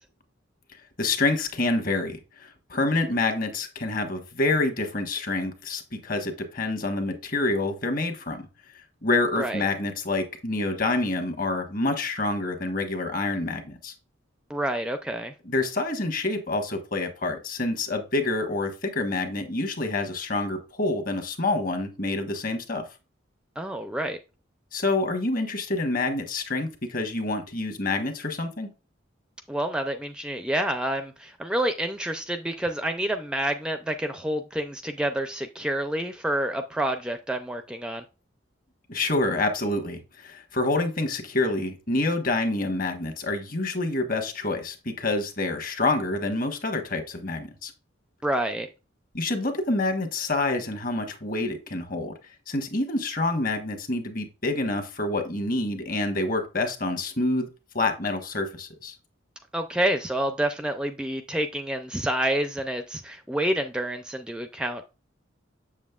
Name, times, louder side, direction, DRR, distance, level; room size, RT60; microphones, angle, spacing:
voice 1, 1.0-8.5 9.0-13.9 15.4-22.8 24.7-28.7 38.9-47.7 49.1-52.1 52.5-57.5 57.7-58.9, left 2 dB, 45° left, 1.3 m, -27 dB
voice 2, 14.5-15.3 23.6-24.2 29.5-38.0 48.2-48.7 59.5-64.8, right 1 dB, 5° right, 0.4 m, -28 dB
7.3 x 7.3 x 2.3 m
head